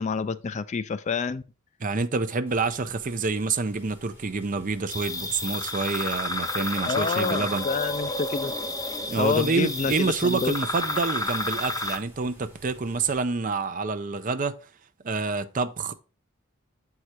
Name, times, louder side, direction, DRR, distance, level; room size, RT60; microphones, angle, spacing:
voice 1, 0.0-1.4 6.9-8.5 9.2-10.5, left 4 dB, 35° left, 0.4 m, -28 dB
voice 2, 1.8-7.7 9.1-14.6 15.0-15.9, right 4 dB, 40° right, 0.6 m, -27 dB
sound 1, 2.5-13.2, equal, 10° right, 3.7 m, -52 dB
sound 2, 4.9-12.0, left 2 dB, 20° left, 0.8 m, -31 dB
7.7 x 4.8 x 4.2 m
head